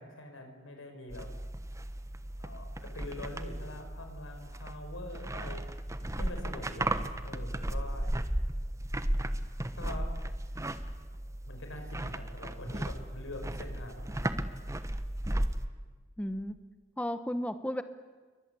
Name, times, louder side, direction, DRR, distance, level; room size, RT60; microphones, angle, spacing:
voice 1, 0.0-1.3 2.4-5.7 6.1-8.4 9.8-10.1 11.5-14.6, left 1 dB, 90° left, 5 dB, 5.7 m, -45 dB
sound 1, 1.1-15.7, right 1 dB, 15° right, 1.2 m, -35 dB
voice 2, 16.2-16.6 17.0-17.8, equal, 5° left, 10 dB, 0.9 m, -33 dB
28.5 x 23.0 x 8.3 m, 1.4 s
head